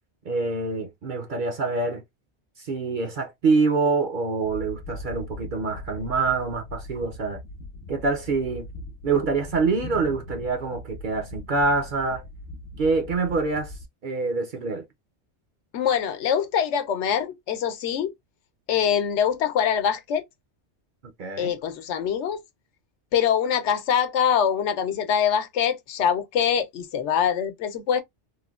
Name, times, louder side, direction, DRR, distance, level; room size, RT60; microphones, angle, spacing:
voice 1, 0.3-2.0 2.6-7.4 7.9-8.7 9.0-12.2 12.8-13.7 14.0-14.9 21.2-21.5, right 4 dB, 55° right, 0.6 m, -25 dB
sound 1, 4.4-13.9, left 1 dB, 55° left, 0.8 m, -40 dB
voice 2, 15.7-18.1 18.7-20.2 21.4-22.4 23.1-28.0, left 8 dB, 80° left, 0.9 m, -24 dB
3.1 x 2.1 x 2.3 m
omnidirectional pair, 1.2 m